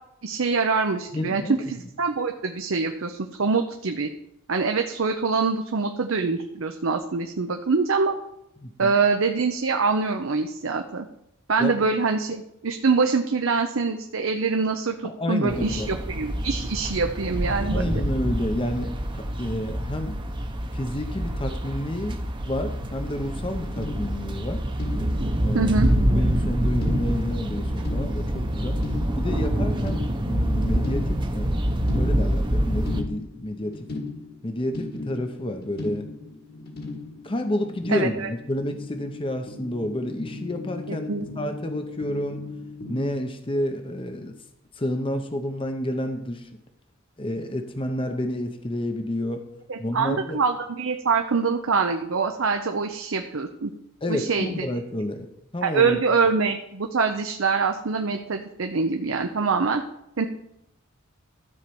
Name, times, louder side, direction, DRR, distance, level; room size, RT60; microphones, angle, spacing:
voice 1, 0.2-1.4 1.7-4.1 4.5-8.2 8.8-11.1 11.5-18.0 25.5-25.9 37.9-38.3 40.9-41.3 49.7-53.7 54.1-54.5 55.6-59.8 60.2-60.3, right 4 dB, 65° right, 5 dB, 0.7 m, -24 dB
voice 2, 1.1-1.6 8.6-8.9 11.6-11.7 15.0-15.9 17.7-20.2 20.7-22.2 22.4-24.6 25.4-25.8 26.1-28.8 29.2-31.6 31.9-33.9 34.4-36.1 37.2-41.1 41.4-42.5 42.9-44.4 44.8-46.5 47.2-49.4 49.8-50.4 54.0-55.3 55.5-56.3, left 1 dB, 25° left, 6 dB, 0.8 m, -30 dB
sound 1, 15.5-33.0, equal, 20° right, 0.9 m, -26 dB
sound 2, 23.5-43.0, left 3 dB, 45° left, 1.7 m, -38 dB
13.0 x 4.6 x 6.9 m, 0.84 s
head